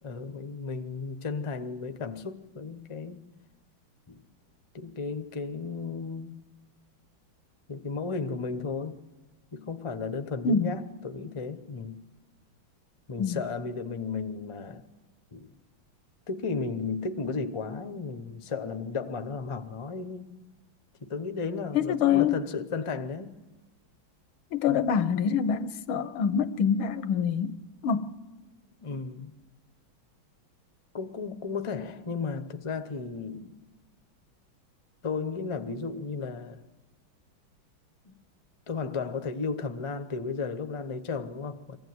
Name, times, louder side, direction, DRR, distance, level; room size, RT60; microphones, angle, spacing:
voice 1, 0.0-3.2 4.1-4.2 4.7-6.4 7.7-9.0 9.5-12.0 13.1-14.8 15.3-15.5 16.3-20.3 21.0-23.4 28.8-29.3 30.9-33.6 35.0-36.6 38.0-38.1 38.7-41.8, left 4 dB, 30° left, 0.5 m, -34 dB
voice 2, 21.7-22.4 24.5-27.5 27.8-28.1, left 7 dB, 85° left, 1.7 m, -25 dB
23.5 x 15.5 x 9.5 m
omnidirectional pair, 2.2 m